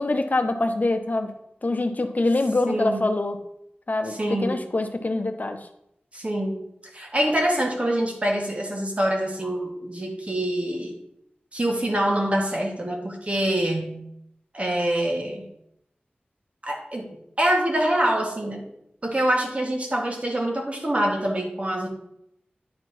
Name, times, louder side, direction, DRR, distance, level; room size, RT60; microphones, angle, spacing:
voice 1, 0.0-1.3 1.6-3.4 3.9-5.6, left 2 dB, 50° left, 7 dB, 0.9 m, -24 dB
voice 2, 2.7-3.1 4.1-4.6 6.1-6.7 6.9-11.0 11.5-14.0 14.5-15.5 16.6-18.7 19.0-21.9, right 1 dB, 35° right, 1 dB, 1.7 m, -25 dB
10.5 x 4.5 x 4.4 m, 0.78 s
wide cardioid pair, 55°, 4 cm